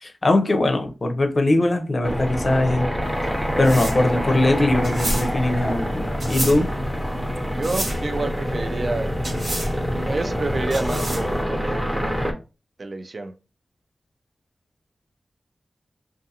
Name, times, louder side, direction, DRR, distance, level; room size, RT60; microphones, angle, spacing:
voice 1, 0.0-2.9 3.6-6.7, left 2 dB, 40° left, 0.5 m, -21 dB
sound 1, 2.0-12.3, equal, 5° right, 0.6 m, -26 dB
sound 2, 3.0-11.4, right 1 dB, 70° right, 1.1 m, -31 dB
voice 2, 7.5-9.1 10.1-12.3 12.8-13.3, right 2 dB, 50° right, 0.3 m, -29 dB
2.5 x 2.5 x 2.6 m
wide cardioid pair, 70°, 0 cm